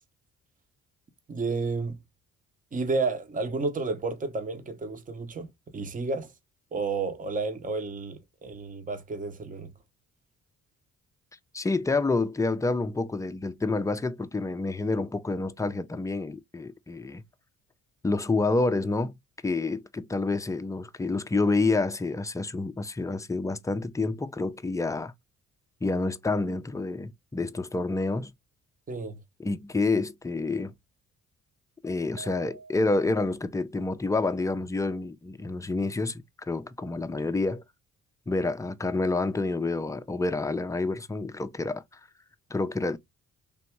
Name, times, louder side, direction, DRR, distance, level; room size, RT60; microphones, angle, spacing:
voice 1, 1.3-2.0 2.7-5.5 5.7-6.3 6.7-9.7 28.9-29.2, right 3 dB, 25° right, 0.9 m, -31 dB
voice 2, 11.5-17.2 18.0-19.2 19.4-25.1 25.8-28.3 29.4-30.7 31.8-37.6 38.3-41.8 42.5-43.0, left 3 dB, 10° left, 0.5 m, -28 dB
sound 1, 32.2-33.4, right 4 dB, 80° right, 0.9 m, -47 dB
3.5 x 2.9 x 4.4 m
cardioid pair, 90°, 30 cm